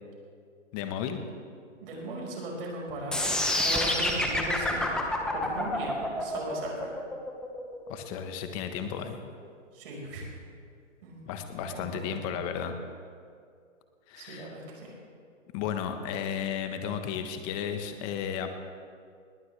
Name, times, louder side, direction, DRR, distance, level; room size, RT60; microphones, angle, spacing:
voice 1, 0.7-1.2 7.9-9.2 11.2-12.7 14.1-14.5 15.5-18.5, left 8 dB, 25° left, 7 dB, 1.3 m, -33 dB
voice 2, 1.8-6.9 9.7-10.3 11.0-11.2 11.7-12.3 14.1-15.0, right 1 dB, 50° right, -1 dB, 5.3 m, -38 dB
sound 1, 3.1-9.1, left 1 dB, ahead, 0.7 m, -28 dB
20.0 x 18.5 x 3.4 m, 2.3 s
hypercardioid pair, 145°, 38 cm